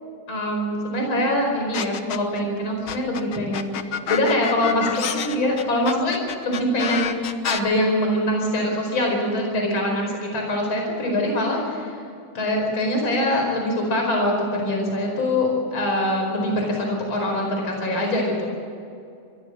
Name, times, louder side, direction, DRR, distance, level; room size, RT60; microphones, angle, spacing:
voice 1, 0.3-3.7 4.1-7.1 7.4-12.0 12.3-18.5, left 1 dB, 35° left, 1 dB, 5.5 m, -23 dB
sound 1, 1.7-2.4 2.9-7.6, left 8 dB, 75° left, 1.1 m, -28 dB
23.5 x 15.5 x 7.7 m, 2.5 s
omnidirectional pair, 3.8 m